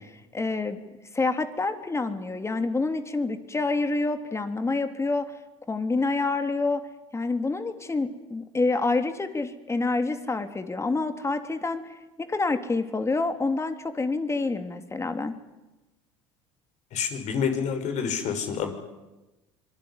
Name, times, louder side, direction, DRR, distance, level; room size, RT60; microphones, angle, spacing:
voice 1, 0.3-0.8 1.1-5.3 5.7-6.8 7.1-11.8 12.2-15.3, left 3 dB, 20° left, 8 dB, 3.1 m, -27 dB
voice 2, 16.9-18.7, left 7 dB, 50° left, 7 dB, 6.0 m, -28 dB
25.5 x 21.5 x 10.0 m, 1.1 s
hypercardioid pair, 75°, 15 cm